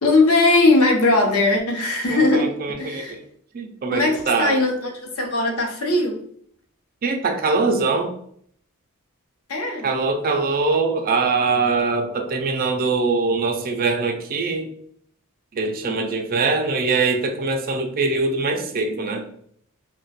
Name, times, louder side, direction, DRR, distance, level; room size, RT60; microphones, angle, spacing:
voice 1, 0.0-3.2 3.9-6.2 9.5-9.9 15.8-16.1, left 2 dB, 75° left, 2 dB, 0.7 m, -20 dB
voice 2, 2.1-3.2 3.5-4.6 7.0-8.1 9.8-14.7 15.5-19.3, right 3 dB, 40° right, 5 dB, 0.4 m, -22 dB
2.4 x 2.2 x 4.0 m, 0.63 s
head